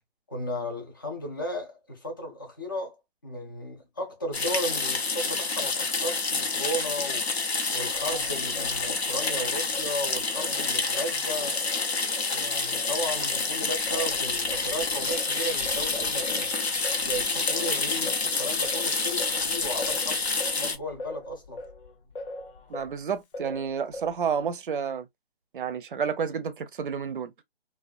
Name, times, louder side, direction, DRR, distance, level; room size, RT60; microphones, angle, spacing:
voice 1, 0.3-3.0 3.2-7.2 7.7-11.6 12.3-16.5 17.0-21.6, equal, 20° left, 0.4 m, -35 dB
sound 1, 4.3-20.8, left 4 dB, 85° left, 0.9 m, -28 dB
Singing, 7.9-12.3 12.7-23.0 23.3-24.3, left 2 dB, 60° left, 0.7 m, -42 dB
voice 2, 22.7-25.1 25.5-27.3, right 7 dB, 55° right, 0.5 m, -30 dB
2.5 x 2.3 x 2.3 m
hypercardioid pair, 160°, 31 cm